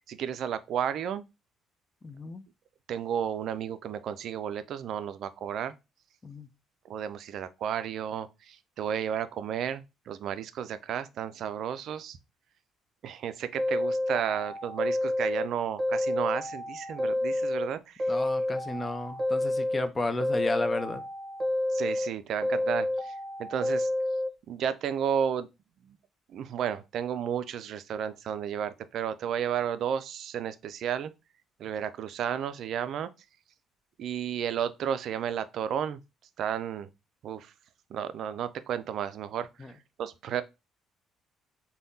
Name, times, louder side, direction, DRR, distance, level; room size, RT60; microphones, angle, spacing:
voice 1, 0.1-1.2 2.9-5.7 6.8-12.2 13.0-18.2 21.7-23.1 23.4-23.9 24.5-25.5 25.8-26.0 26.3-31.1 31.6-33.1 34.0-36.0 36.4-36.9 37.2-37.5 37.9-39.7 40.0-40.4, right 8 dB, 65° right, 0.3 m, -32 dB
voice 2, 2.0-2.4 6.2-6.5 18.1-21.0 39.6-39.7, left 2 dB, 30° left, 0.5 m, -33 dB
sound 1, 13.6-15.5 15.8-17.7 18.0-19.9 20.2-22.1 22.4-24.3, left 1 dB, 25° right, 1.0 m, -29 dB
3.3 x 2.2 x 2.7 m
supercardioid pair, 70°, 0 cm